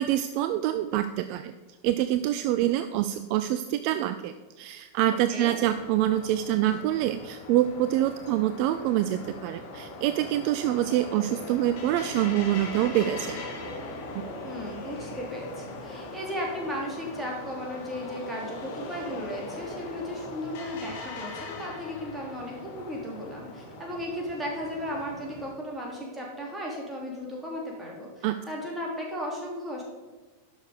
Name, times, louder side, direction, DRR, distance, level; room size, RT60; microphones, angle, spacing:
voice 1, 0.0-1.5 1.8-13.4 28.2-28.4, right 13 dB, 45° right, 11 dB, 0.4 m, -26 dB
sound 1, 5.7-25.5, left 2 dB, 50° left, 2.5 m, -40 dB
voice 2, 14.4-29.8, equal, 10° right, -2 dB, 3.1 m, -35 dB
11.0 x 6.5 x 5.1 m, 1.2 s
figure-of-eight pair, 90°, 0 cm